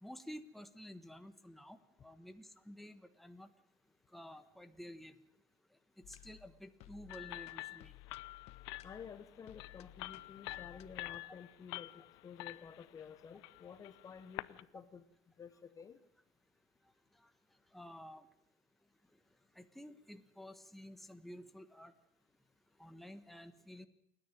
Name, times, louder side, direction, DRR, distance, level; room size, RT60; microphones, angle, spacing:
voice 1, 0.0-3.5 4.1-5.1 6.1-7.9 17.7-18.3 19.6-21.9 22.8-23.9, equal, ahead, 8 dB, 1.3 m, -52 dB
sound 1, 6.0-11.2, left 14 dB, 55° left, 1.0 m, -58 dB
sound 2, 7.1-14.6, left 20 dB, 85° left, 0.7 m, -48 dB
voice 2, 8.8-15.0 15.4-16.0, left 7 dB, 25° left, 12 dB, 1.0 m, -52 dB
29.0 x 10.0 x 9.0 m, 0.76 s
cardioid pair, 130°, 13 cm